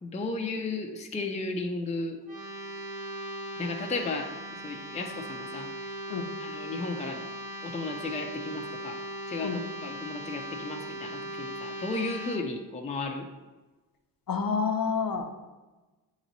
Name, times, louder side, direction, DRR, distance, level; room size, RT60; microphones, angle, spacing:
voice 1, 0.0-2.2 3.6-5.7 6.4-7.2 7.6-9.0 9.3-13.3, left 3 dB, 20° left, 2 dB, 0.4 m, -34 dB
sound 1, 2.2-12.4, right 1 dB, 55° right, 1.5 m, -39 dB
voice 2, 14.3-15.2, left 5 dB, 55° left, 4 dB, 0.7 m, -28 dB
9.0 x 3.0 x 3.9 m, 1.2 s
wide cardioid pair, 180°, 40 cm